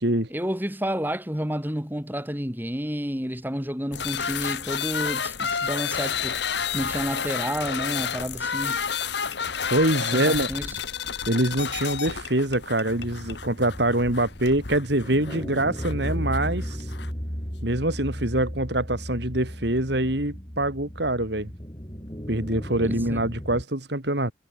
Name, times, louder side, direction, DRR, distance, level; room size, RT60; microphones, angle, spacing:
voice 1, 0.3-8.8 10.1-10.8 22.8-23.2, equal, 10° right, 4.5 m, -30 dB
sound 1, 3.9-17.1, left 7 dB, 60° left, 1.6 m, -30 dB
voice 2, 9.7-10.5 11.3-16.9 17.6-21.5 22.3-24.3, right 1 dB, 60° right, 3.4 m, -25 dB
sound 2, 12.9-23.6, equal, 20° left, 6.4 m, -35 dB
head